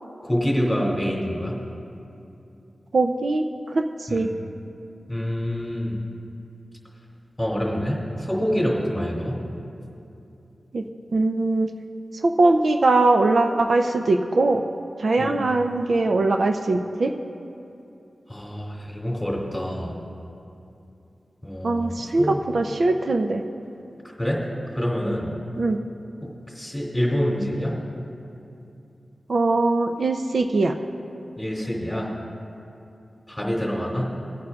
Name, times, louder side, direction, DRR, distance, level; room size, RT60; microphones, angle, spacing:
voice 1, 0.2-1.6 4.1-4.3 5.1-6.0 7.4-9.4 15.2-15.4 18.3-19.9 21.4-22.4 24.2-24.4 24.7-25.3 26.5-27.8 31.4-32.1 33.3-34.1, equal, 10° left, -3 dB, 2.7 m, -26 dB
voice 2, 2.9-4.3 10.7-10.8 11.1-11.7 12.2-14.6 15.0-17.1 21.6-23.4 25.6-25.8 29.3-30.7, right 2 dB, 70° right, 5 dB, 0.5 m, -21 dB
21.0 x 9.5 x 2.4 m, 2.7 s
wide cardioid pair, 75°, 0 cm